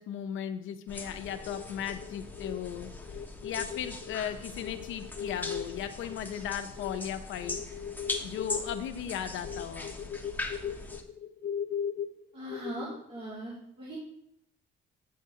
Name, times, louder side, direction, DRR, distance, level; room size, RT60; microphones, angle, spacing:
voice 1, 0.0-2.9 3.4-7.6 8.2-10.2, left 9 dB, 85° left, 9 dB, 0.7 m, -37 dB
sound 1, 0.9-11.0, left 2 dB, 10° left, 1.1 m, -41 dB
sound 2, 1.3-7.0 7.3-13.2, left 8 dB, 50° left, 0.8 m, -39 dB
voice 2, 12.3-14.0, right 1 dB, 30° right, -6 dB, 2.5 m, -40 dB
8.5 x 8.4 x 2.8 m, 0.75 s
cardioid pair, 90°, 20 cm